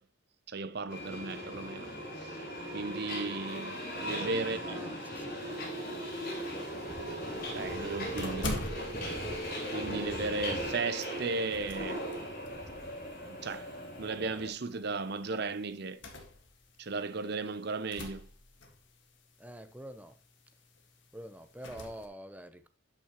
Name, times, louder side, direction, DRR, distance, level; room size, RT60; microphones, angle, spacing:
voice 1, 0.5-1.9 2.7-4.6 7.5-8.7 9.7-12.0 13.3-13.7 14.0-16.0 16.8-18.2, right 3 dB, 55° right, 0.7 m, -35 dB
Subway metro underground, 0.9-14.5, equal, 45° left, 3.2 m, -38 dB
voice 2, 3.9-5.7 19.4-20.1 21.1-22.7, right 1 dB, 10° right, 0.7 m, -46 dB
sound 1, 5.5-22.1, left 2 dB, 65° left, 1.9 m, -47 dB
12.5 x 6.1 x 3.0 m
head